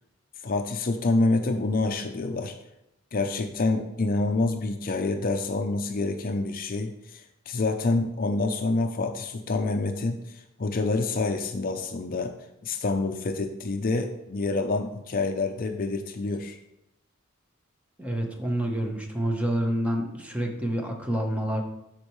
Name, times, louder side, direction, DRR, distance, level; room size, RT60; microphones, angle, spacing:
voice 1, 0.4-2.6 3.1-12.3 12.6-16.6, left 3 dB, 45° left, 6 dB, 0.5 m, -27 dB
voice 2, 18.0-21.6, right 1 dB, 5° right, 2 dB, 1.0 m, -28 dB
12.5 x 4.5 x 3.1 m, 0.86 s
head